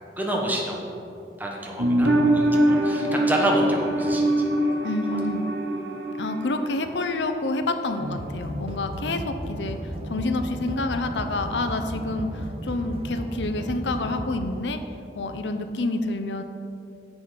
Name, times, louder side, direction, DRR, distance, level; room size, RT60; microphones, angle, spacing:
voice 1, 0.2-0.9 1.4-4.5 5.1-5.2, right 1 dB, 10° right, -1 dB, 1.3 m, -28 dB
sound 1, 1.8-7.3 7.6-7.7, right 1 dB, 70° right, 1.0 m, -23 dB
voice 2, 4.8-5.5 6.2-14.8 15.1-16.4, left 2 dB, 90° left, 8 dB, 0.7 m, -28 dB
sound 2, 8.0-14.3, equal, 35° right, 0.9 m, -34 dB
10.5 x 7.0 x 5.1 m, 2.7 s
head